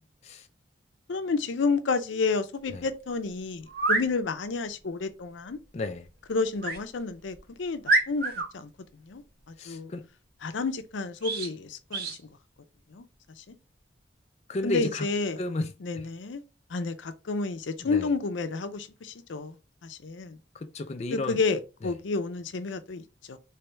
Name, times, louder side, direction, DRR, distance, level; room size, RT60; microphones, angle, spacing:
voice 1, 1.1-5.6 6.3-8.7 9.1-9.2 9.6-9.9 10.4-12.2 12.9-13.0 13.4-13.6 14.6-15.4 15.8-16.4 16.7-19.6 19.8-20.4 21.1-23.4, left 4 dB, 85° left, 0.5 m, -30 dB
sound 1, 3.7-4.1 6.6-6.8 7.3-7.4 7.8-8.5 11.2-11.5 11.9-12.2, right 3 dB, 55° right, 0.7 m, -26 dB
voice 2, 5.7-6.1 9.6-10.1 14.5-15.1 15.4-16.1 17.8-18.1 20.5-21.4 21.8-21.9, left 2 dB, 35° left, 0.4 m, -33 dB
3.4 x 3.3 x 3.1 m
head